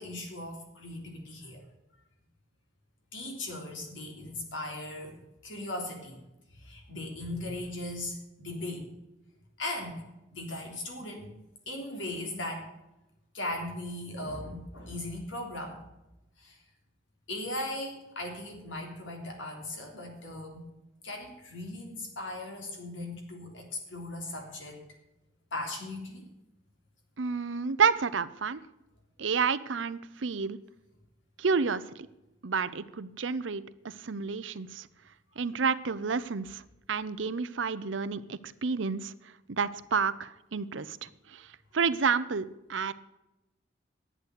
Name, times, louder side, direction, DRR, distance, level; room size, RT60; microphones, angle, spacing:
voice 1, 0.0-1.6 3.1-6.2 6.5-8.9 9.6-10.0 10.3-11.3 11.7-12.7 13.3-15.8 16.4-16.6 17.3-20.7 21.0-24.8 25.5-26.3, left 1 dB, 85° left, 2 dB, 3.4 m, -38 dB
voice 2, 27.2-28.6 29.2-30.6 31.4-31.8 32.4-34.9 35.4-36.6 36.9-39.1 39.5-41.4 41.7-42.9, right 5 dB, 80° right, 14 dB, 0.7 m, -30 dB
11.0 x 8.2 x 8.1 m, 0.95 s
head